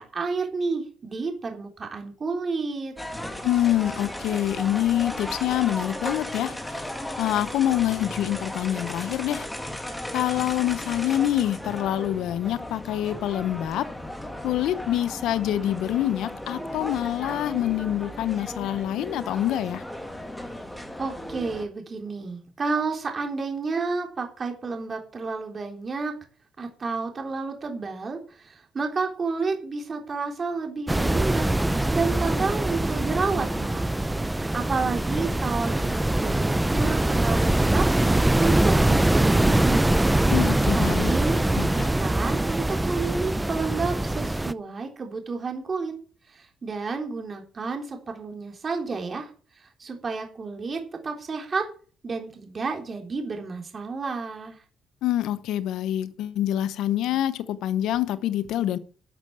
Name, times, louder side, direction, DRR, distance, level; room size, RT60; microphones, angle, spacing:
voice 1, 0.0-2.9 21.0-26.1 26.6-31.4 31.9-33.9 34.3-37.9 38.4-39.9 40.7-45.9 46.3-49.3 49.8-51.7 52.0-54.6, right 4 dB, 40° right, 3.6 m, -30 dB
sound 1, 3.0-21.6, left 1 dB, 10° left, 2.5 m, -36 dB
voice 2, 3.4-6.9 7.2-9.5 10.1-13.9 14.4-19.8 40.3-41.1 41.5-41.9 55.0-58.8, left 12 dB, 85° left, 0.8 m, -26 dB
sound 2, 30.9-44.5, right 1 dB, 10° right, 0.6 m, -23 dB
12.0 x 6.3 x 8.7 m
cardioid pair, 90°, 0 cm